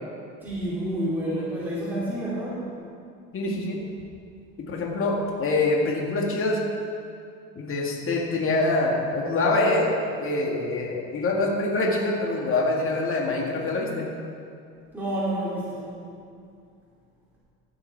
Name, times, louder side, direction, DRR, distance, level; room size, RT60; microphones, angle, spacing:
voice 1, 0.4-2.6 14.9-15.9, right 1 dB, 5° right, -10 dB, 3.2 m, -29 dB
voice 2, 3.3-3.8 4.6-6.6 7.6-9.9 10.2-14.1, left 2 dB, 40° left, -1 dB, 2.0 m, -25 dB
16.0 x 7.6 x 4.6 m, 2.4 s
supercardioid pair, 95°, 33 cm